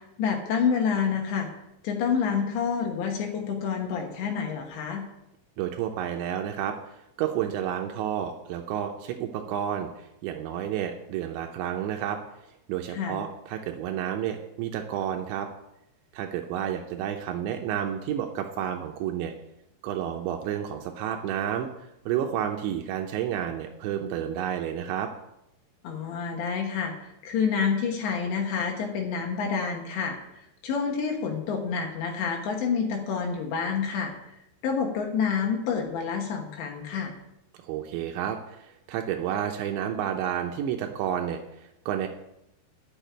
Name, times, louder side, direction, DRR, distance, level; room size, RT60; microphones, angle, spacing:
voice 1, 0.0-1.5 1.8-5.0 12.9-13.2 25.8-30.2 30.6-34.1 34.6-37.1, left 6 dB, 75° left, 1 dB, 3.5 m, -28 dB
voice 2, 5.6-6.7 7.2-12.2 12.7-15.5 16.1-19.3 19.8-25.1 37.6-42.1, right 10 dB, 80° right, 3 dB, 3.1 m, -30 dB
10.0 x 6.6 x 9.1 m, 0.86 s
omnidirectional pair, 5.3 m